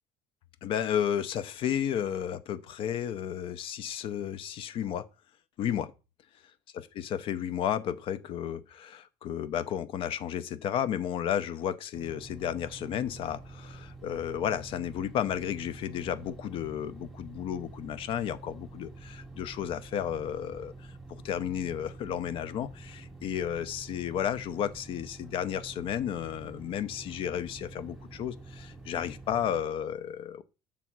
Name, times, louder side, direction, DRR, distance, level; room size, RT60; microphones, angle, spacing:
voice 1, 0.6-5.0 5.6-5.9 6.7-30.4, left 9 dB, 50° left, 0.6 m, -33 dB
sound 1, 11.9-29.6, right 3 dB, ahead, 1.0 m, -47 dB
7.2 x 3.4 x 6.1 m
cardioid pair, 135°, 12 cm